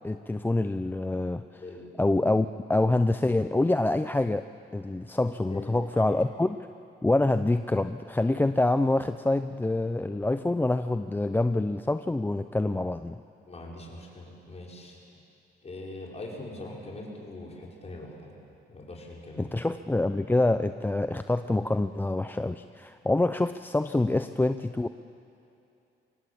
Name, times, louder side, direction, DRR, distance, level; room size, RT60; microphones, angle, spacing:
voice 1, 0.0-1.6 2.0-4.5 4.7-6.6 7.0-13.2 19.4-24.9, left 2 dB, 10° left, 10 dB, 0.5 m, -26 dB
voice 2, 5.5-6.1 13.5-15.0 15.6-18.3 18.7-19.6, left 2 dB, 30° left, -2 dB, 5.7 m, -42 dB
24.0 x 19.0 x 8.6 m, 2.7 s
cardioid pair, 90°, 20 cm